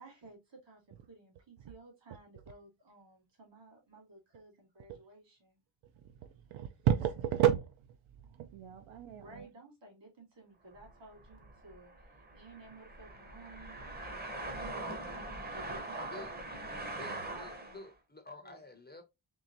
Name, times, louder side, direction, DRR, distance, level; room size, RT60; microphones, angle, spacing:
voice 1, 0.0-5.6 5.9-6.0 9.0-15.2 15.5-17.8 18.4-18.6, right 2 dB, 65° right, 2.1 m, -55 dB
voice 2, 6.5-7.7 8.4-9.5 15.4-15.5, right 10 dB, 85° right, 0.5 m, -31 dB
sound 1, 10.7-17.9, right 2 dB, 20° right, 0.6 m, -42 dB
voice 3, 16.9-19.0, left 3 dB, 25° left, 0.4 m, -50 dB
3.7 x 3.0 x 2.8 m
wide cardioid pair, 180°, 47 cm